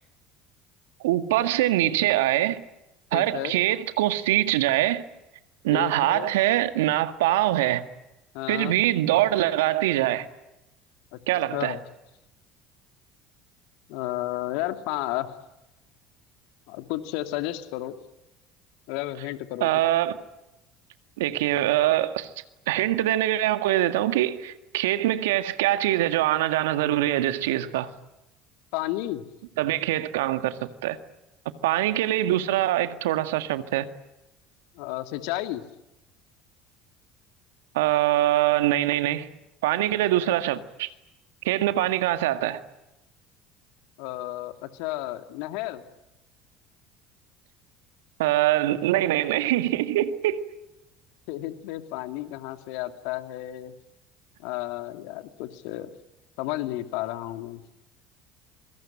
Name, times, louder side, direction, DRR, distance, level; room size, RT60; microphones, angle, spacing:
voice 1, 1.0-2.6 3.1-5.0 5.6-7.8 8.5-10.3 11.3-11.8 19.6-20.2 21.2-22.3 22.7-27.9 29.6-31.0 31.6-33.9 37.7-39.3 39.6-40.9 41.4-42.6 48.2-50.4, right 14 dB, 75° right, 1.8 m, -23 dB
voice 2, 3.1-3.6 5.7-6.3 8.3-8.8 11.1-11.2 11.5-11.8 13.9-15.3 16.7-18.0 18.9-19.8 28.7-29.2 34.7-35.6 44.0-45.8 51.3-53.7 54.4-55.9 56.4-57.6, left 15 dB, 70° left, 2.5 m, -32 dB
25.5 x 23.0 x 8.9 m
hypercardioid pair, 70°, 0 cm